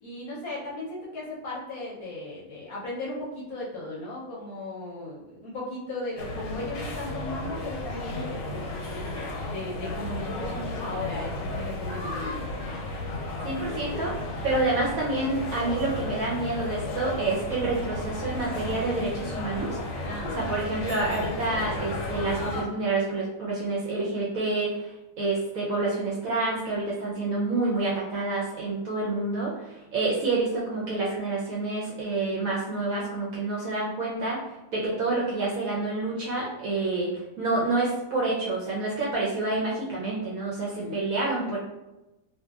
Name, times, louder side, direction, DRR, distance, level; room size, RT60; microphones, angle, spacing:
voice 1, 0.0-9.1 9.5-12.5 20.0-20.4 40.8-41.0, left 2 dB, 65° left, -5 dB, 0.9 m, -36 dB
sound 1, 6.2-22.6, left 2 dB, 90° left, 1.3 m, -33 dB
voice 2, 13.4-14.1 14.4-19.8 20.3-41.6, right 2 dB, 70° right, -5 dB, 0.8 m, -28 dB
2.8 x 2.5 x 2.3 m, 0.98 s
omnidirectional pair, 1.9 m